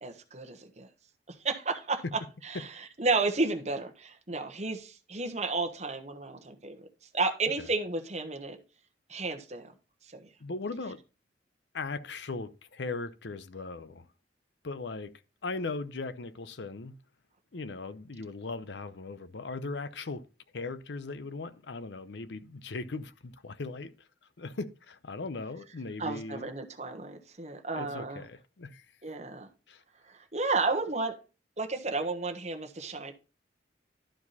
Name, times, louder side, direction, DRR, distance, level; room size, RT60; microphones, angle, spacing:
voice 1, 0.0-0.9 1.4-2.0 2.4-2.7 3.0-6.9 7.1-8.6 9.1-9.7 10.1-10.3 26.0-28.2 29.0-29.5 30.3-31.2 31.6-33.1, right 3 dB, 40° right, 1.2 m, -32 dB
voice 2, 10.4-11.0 11.7-14.1 14.6-15.1 15.4-17.0 17.5-20.2 20.5-24.1 24.4-26.5 27.7-28.9 29.7-29.8, left 3 dB, 75° left, 0.7 m, -38 dB
11.5 x 4.8 x 4.1 m
head